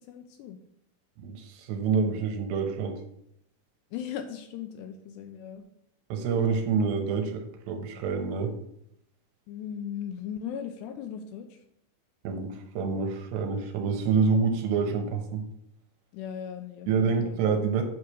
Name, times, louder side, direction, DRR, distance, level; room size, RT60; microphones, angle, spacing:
voice 1, 0.1-0.6 3.9-5.7 9.5-11.5 16.1-17.4, left 8 dB, 80° left, 6 dB, 2.6 m, -38 dB
voice 2, 1.2-3.0 6.1-7.4 7.7-8.5 12.2-15.5 16.9-17.8, right 5 dB, 75° right, 5 dB, 3.0 m, -27 dB
8.4 x 5.0 x 6.2 m, 0.74 s
omnidirectional pair, 5.3 m